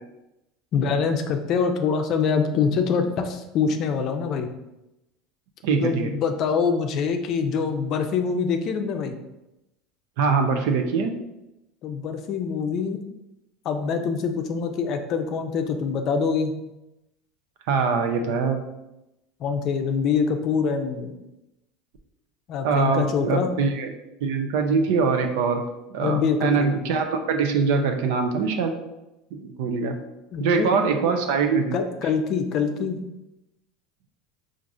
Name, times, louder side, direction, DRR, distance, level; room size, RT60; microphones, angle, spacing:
voice 1, 0.7-4.5 5.8-9.2 11.8-13.0 13.6-16.5 19.4-21.1 22.5-23.5 26.0-26.8 30.3-31.1 31.7-33.0, left 5 dB, 55° left, 6 dB, 0.5 m, -25 dB
voice 2, 5.6-6.1 10.2-11.1 17.7-18.6 22.6-23.9 24.2-25.6 25.9-28.7 29.3-29.9 30.4-31.7, right 5 dB, 75° right, 5 dB, 0.5 m, -23 dB
4.7 x 2.5 x 2.6 m, 0.93 s
supercardioid pair, 100°, 0 cm